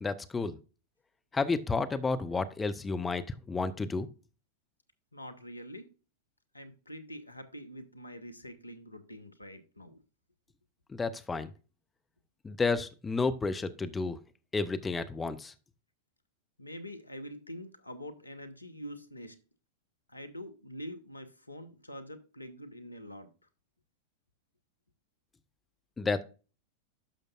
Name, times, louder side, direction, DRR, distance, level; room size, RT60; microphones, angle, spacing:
voice 1, 0.0-0.6 1.3-4.1 10.9-11.5 12.4-14.2 14.5-15.5 26.0-26.2, left 4 dB, 15° left, 0.7 m, -31 dB
voice 2, 5.1-5.9 6.5-10.0 16.6-19.4 20.1-23.3, equal, 85° left, 1.0 m, -45 dB
11.5 x 6.6 x 2.4 m
figure-of-eight pair, 90°, 0 cm